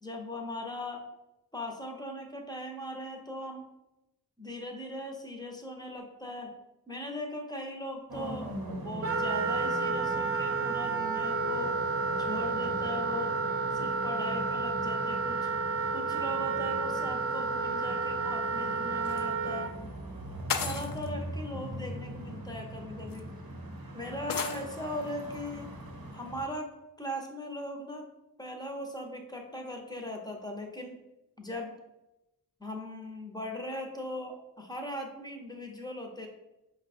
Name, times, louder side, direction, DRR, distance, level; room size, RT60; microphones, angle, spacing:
voice 1, 0.0-1.1 1.5-3.7 4.4-6.5 6.9-11.8 12.2-13.4 13.7-15.5 15.9-19.7 20.6-23.3 23.9-25.7 26.1-26.7 27.0-28.1 28.4-31.0 31.4-31.8 32.6-36.3, left 1 dB, 10° left, 1 dB, 0.8 m, -39 dB
sound 1, 8.1-26.4, right 1 dB, 60° right, 0.9 m, -41 dB
Wind instrument woodwind instrument, 9.0-19.7, right 4 dB, 35° right, 0.4 m, -31 dB
sound 2, 19.0-19.2 20.5-21.1 22.3-22.4 23.1-23.2 24.3-24.6, left 6 dB, 55° left, 0.5 m, -33 dB
5.2 x 2.4 x 4.2 m, 0.95 s
wide cardioid pair, 65°, 40 cm